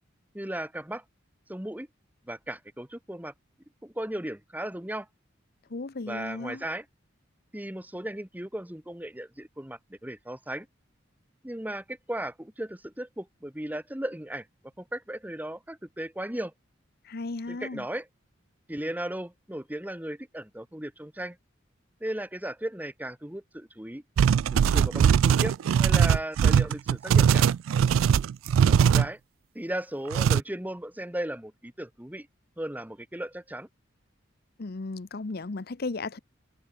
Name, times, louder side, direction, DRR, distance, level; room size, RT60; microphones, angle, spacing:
voice 1, 0.3-1.0 1.5-1.9 2.2-3.3 3.8-5.1 6.1-6.9 7.5-10.7 11.4-14.5 14.8-16.5 17.5-18.1 18.7-21.4 22.0-24.0 24.5-27.5 28.7-29.2 29.5-32.3 32.6-33.7, right 1 dB, 10° right, 1.3 m, -36 dB
voice 2, 5.7-6.6 17.0-17.8 34.6-36.2, left 3 dB, 50° left, 0.7 m, -35 dB
sound 1, 24.2-29.1 30.1-30.4, right 7 dB, 90° right, 0.3 m, -21 dB
head